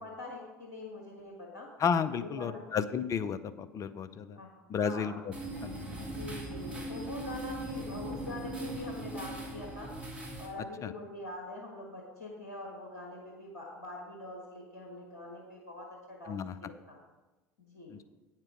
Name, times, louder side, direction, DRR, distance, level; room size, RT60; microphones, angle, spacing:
voice 1, 0.0-1.7 2.2-2.6 4.4-4.5 4.8-5.1 6.0-9.9 10.4-17.0 17.6-17.9, left 2 dB, 75° left, -1 dB, 1.5 m, -44 dB
voice 2, 1.8-4.4 4.7-5.3 5.6-5.8 10.8-10.9 16.3-16.6 17.9-18.0, left 7 dB, 35° left, 13 dB, 0.6 m, -32 dB
sound 1, 5.3-10.5, right 1 dB, 10° right, 2.9 m, -39 dB
8.8 x 7.5 x 4.8 m, 1.1 s
figure-of-eight pair, 70°, 9 cm